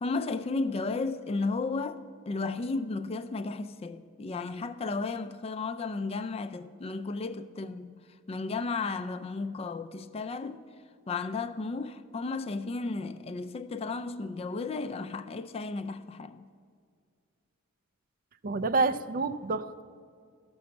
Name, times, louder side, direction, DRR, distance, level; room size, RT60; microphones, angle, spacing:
voice 1, 0.0-8.0 8.3-10.6 11.1-16.4, left 3 dB, 30° left, 0.3 m, -34 dB
voice 2, 18.4-19.8, right 3 dB, 40° right, 0.4 m, -28 dB
13.0 x 6.2 x 7.0 m
head